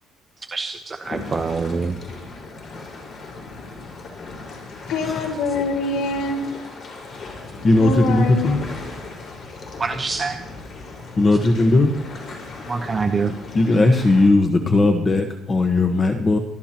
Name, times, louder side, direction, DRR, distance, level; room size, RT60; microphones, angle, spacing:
voice 1, 0.5-2.0 9.8-10.4 12.7-13.3, right 4 dB, 20° right, 5 dB, 0.8 m, -25 dB
sound 1, 1.0-14.3, left 3 dB, 45° left, 4.8 m, -37 dB
voice 2, 4.9-6.4 7.8-8.6, left 3 dB, 80° left, 1 dB, 4.1 m, -24 dB
voice 3, 7.6-8.7 11.2-11.9 13.5-16.4, left 2 dB, 25° left, 4 dB, 1.3 m, -17 dB
26.0 x 13.0 x 3.0 m, 0.81 s
cardioid pair, 135°, 0 cm